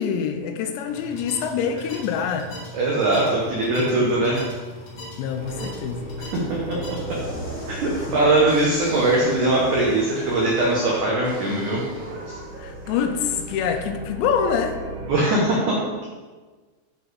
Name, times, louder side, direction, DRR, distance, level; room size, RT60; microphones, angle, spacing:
voice 1, 0.0-2.5 3.5-3.6 5.2-6.1 8.1-8.2 12.6-14.8, left 7 dB, 85° left, 6 dB, 2.7 m, -25 dB
sound 1, 0.9-7.2, left 1 dB, 50° left, 2.1 m, -39 dB
voice 2, 2.7-4.4 6.2-6.8 7.1-7.2 7.7-11.8 12.3-12.4 15.1-15.8, right 2 dB, 85° right, -4 dB, 1.7 m, -21 dB
sound 2, 5.4-15.1, right 2 dB, 65° right, 2.7 m, -38 dB
sound 3, 7.1-13.6, equal, 30° left, 1.4 m, -38 dB
11.0 x 4.2 x 4.7 m, 1.4 s
omnidirectional pair, 5.4 m